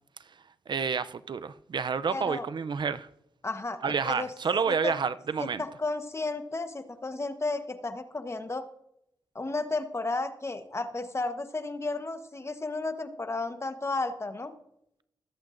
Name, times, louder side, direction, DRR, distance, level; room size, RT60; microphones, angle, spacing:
voice 1, 0.7-3.1 3.8-5.6, right 6 dB, 60° right, 0.5 m, -29 dB
voice 2, 2.1-2.5 3.4-4.3 4.6-5.0 5.4-8.6 9.3-14.5, left 3 dB, 30° left, 1.1 m, -33 dB
21.5 x 8.1 x 2.6 m
cardioid pair, 65°, 9 cm